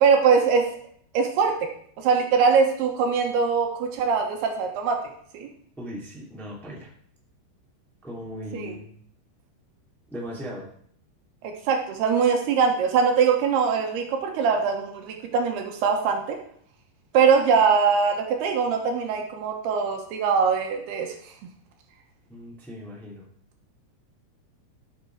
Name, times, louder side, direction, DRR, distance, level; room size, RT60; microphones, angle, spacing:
voice 1, 0.0-0.7 1.1-1.7 2.0-5.0 5.3-5.5 8.5-8.7 11.4-16.4 17.1-21.1, right 6 dB, 75° right, 3 dB, 3.1 m, -22 dB
voice 2, 5.8-6.9 8.0-8.9 10.1-10.7 22.3-23.3, equal, ahead, -3 dB, 1.6 m, -38 dB
12.5 x 6.9 x 4.7 m, 0.62 s
omnidirectional pair, 4.9 m